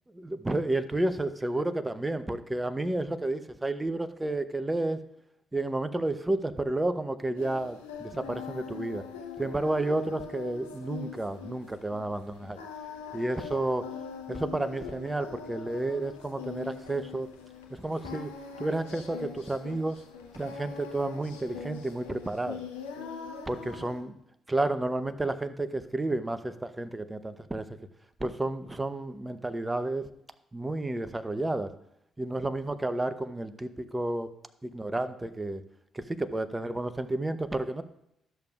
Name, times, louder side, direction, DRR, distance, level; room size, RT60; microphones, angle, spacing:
voice 1, 0.2-5.0 5.5-9.0 9.4-12.6 13.1-13.9 14.3-17.3 17.7-18.3 18.6-20.0 20.3-22.6 23.5-24.1 24.5-27.7 28.2-30.1 30.5-31.7 32.2-34.3 34.6-35.6 35.9-37.8, right 2 dB, 15° right, 11 dB, 0.8 m, -31 dB
Singing, 7.4-24.0, left 6 dB, 90° left, 0.9 m, -42 dB
12.5 x 6.7 x 2.4 m, 0.77 s
hypercardioid pair, 45°, 0 cm